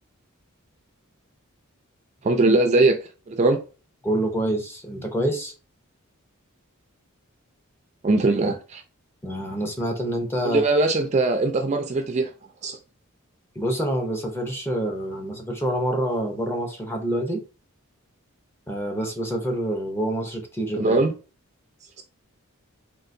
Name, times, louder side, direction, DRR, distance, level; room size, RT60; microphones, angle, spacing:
voice 1, 2.2-3.0 3.3-3.6 8.0-8.8 10.4-12.3 12.6-12.8 20.8-21.1, right 2 dB, 30° right, 0.4 m, -20 dB
voice 2, 4.0-5.5 9.2-10.6 13.6-17.4 18.7-20.9, right 1 dB, 10° left, 0.6 m, -27 dB
3.7 x 2.5 x 2.5 m
head